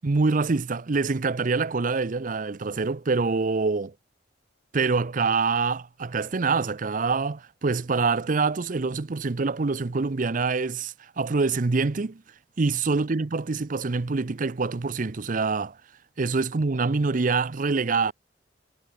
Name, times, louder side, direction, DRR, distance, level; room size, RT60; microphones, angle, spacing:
voice 1, 0.0-3.9 4.7-12.2 12.6-15.8 16.2-18.1, right 4 dB, 50° right, 0.6 m, -25 dB
head